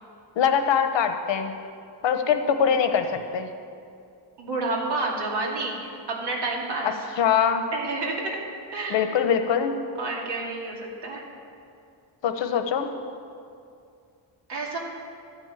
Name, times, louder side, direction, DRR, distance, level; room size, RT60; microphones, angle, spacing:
voice 1, 0.4-1.5 2.0-3.5 7.2-7.7 8.9-9.8 12.2-12.9, left 7 dB, 90° left, 7 dB, 1.0 m, -23 dB
voice 2, 4.4-6.9 7.7-8.4 8.7-9.1 10.0-11.2 14.5-14.8, right 3 dB, 65° right, -2 dB, 2.5 m, -29 dB
13.0 x 6.1 x 9.1 m, 2.4 s
wide cardioid pair, 130°, 43 cm